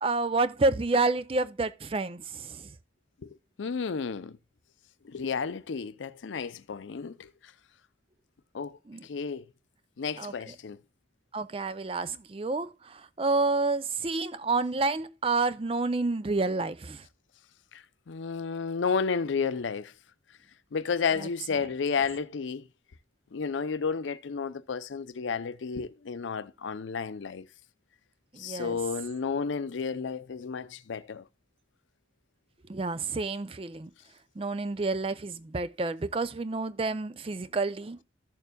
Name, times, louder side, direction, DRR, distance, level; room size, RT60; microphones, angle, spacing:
voice 1, 0.0-2.7 8.9-9.1 10.2-10.6 11.3-17.0 21.2-21.3 21.6-21.7 28.3-28.8 32.7-33.9 34.4-38.0, right 3 dB, 30° right, 0.4 m, -29 dB
voice 2, 3.2-4.4 5.0-7.3 8.5-8.8 9.0-9.5 10.0-10.8 18.1-19.9 20.7-22.6 23.3-27.5 28.4-31.2, left 5 dB, 85° left, 0.5 m, -32 dB
14.5 x 6.8 x 2.2 m
head